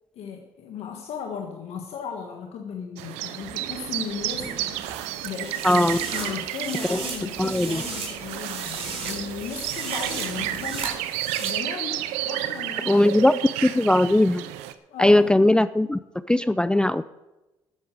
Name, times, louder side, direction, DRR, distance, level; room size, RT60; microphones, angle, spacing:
voice 1, 0.1-4.5 5.2-13.3 14.9-15.3, left 6 dB, 70° left, 3 dB, 1.4 m, -36 dB
sound 1, 3.0-14.7, right 13 dB, 85° right, 0.7 m, -32 dB
sound 2, 3.4-10.9, right 3 dB, 40° right, 4.1 m, -46 dB
sound 3, 4.7-11.5, right 4 dB, 60° right, 4.3 m, -36 dB
voice 2, 5.6-6.0 6.9-7.0 7.4-7.8 12.9-13.3 13.6-14.4 15.0-16.0 16.3-17.0, left 1 dB, 10° left, 15 dB, 0.4 m, -19 dB
12.5 x 8.7 x 6.4 m, 1.0 s
supercardioid pair, 60°, 11 cm